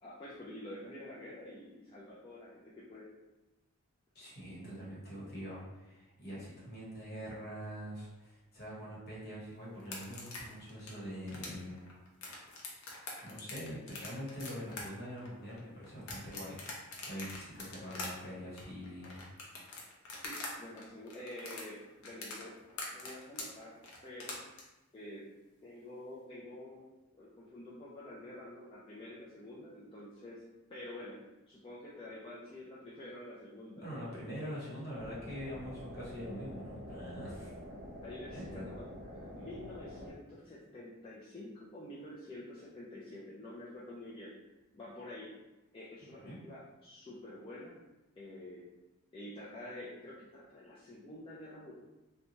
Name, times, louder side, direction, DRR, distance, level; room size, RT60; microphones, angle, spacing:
voice 1, 0.0-3.1 4.2-4.3 20.2-22.5 22.9-23.8 24.0-24.4 24.9-25.3 25.6-30.4 30.7-31.2 31.5-33.8 38.0-38.9 39.2-44.3 44.7-45.3 45.7-47.8 48.2-48.6 49.1-51.7, left 1 dB, 25° left, -8 dB, 0.4 m, -48 dB
voice 2, 4.1-11.8 13.2-16.6 17.1-19.2 33.8-37.5 38.3-38.7 46.2-46.4, equal, 45° left, -7 dB, 1.0 m, -44 dB
sound 1, 9.8-20.5 20.8-24.6, left 3 dB, 75° left, 0.6 m, -44 dB
sound 2, 34.9-40.1, equal, 40° right, 0.8 m, -47 dB
3.0 x 2.2 x 2.6 m, 1.0 s
head